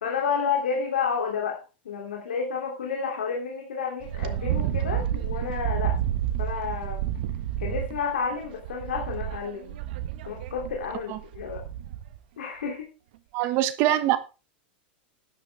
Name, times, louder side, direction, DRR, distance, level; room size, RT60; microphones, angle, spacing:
voice 1, 0.0-6.0 6.4-7.1 7.6-9.8 10.2-11.6 12.4-12.9 13.4-13.5, left 6 dB, 90° left, 0 dB, 2.9 m, -30 dB
Wind, 4.0-12.2, right 11 dB, 65° right, 1.4 m, -30 dB
voice 2, 13.3-14.2, right 13 dB, 45° right, 10 dB, 1.4 m, -23 dB
12.5 x 10.5 x 3.4 m, 0.32 s
supercardioid pair, 130°, 6 cm